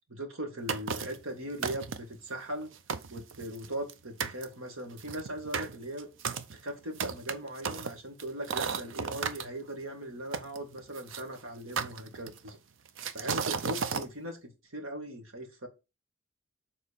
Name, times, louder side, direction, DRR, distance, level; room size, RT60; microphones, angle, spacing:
voice 1, 0.1-2.7 3.1-6.1 6.5-12.6 13.1-15.7, right 1 dB, 85° right, 4 dB, 1.8 m, -39 dB
sound 1, 0.7-1.2 1.6-2.2 2.6-2.7 2.9-3.9 4.2-4.4 5.0-9.4 10.3-11.2 11.8-12.5 13.0-14.1, right 6 dB, 65° right, 0.6 m, -34 dB
6.8 x 4.2 x 4.2 m, 0.27 s
head